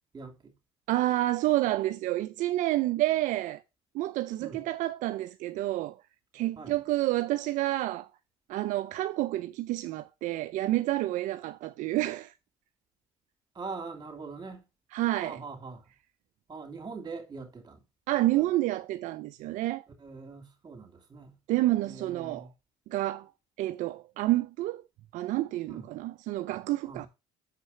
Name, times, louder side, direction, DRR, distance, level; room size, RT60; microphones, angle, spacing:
voice 1, 0.1-0.5 4.4-4.7 6.6-6.8 13.5-14.6 15.2-15.8 16.5-17.8 18.3-18.4 20.0-21.4 21.8-22.5 25.7-25.9 26.8-27.1, right 4 dB, 30° right, 2.8 m, -42 dB
voice 2, 0.9-3.6 3.9-6.0 6.3-8.1 8.5-12.3 14.9-15.4 18.1-19.8 21.5-22.5 22.9-23.3 23.6-24.8 25.1-27.1, right 16 dB, 70° right, 0.4 m, -29 dB
6.5 x 4.9 x 5.5 m
supercardioid pair, 75°, 13 cm